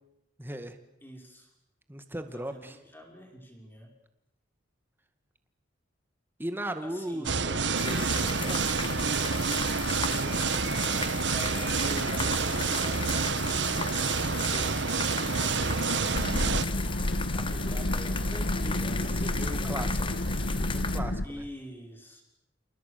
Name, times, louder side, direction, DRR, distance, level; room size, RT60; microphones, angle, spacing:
voice 1, 0.4-0.8 1.9-2.8 6.4-7.6 7.8-8.8 18.8-20.0 20.6-21.5, right 1 dB, 10° right, 8 dB, 2.1 m, -38 dB
voice 2, 1.0-1.5 2.2-3.9 6.8-7.4 10.1-10.5 11.3-16.9 17.3-20.2 21.2-22.2, equal, 10° left, 2 dB, 6.1 m, -46 dB
sound 1, 7.2-16.6, right 4 dB, 60° right, 1.4 m, -28 dB
sound 2, 7.8-21.0, left 5 dB, 25° left, 1.6 m, -37 dB
sound 3, 16.1-21.3, left 1 dB, 70° left, 1.6 m, -30 dB
29.0 x 29.0 x 6.9 m, 0.84 s
head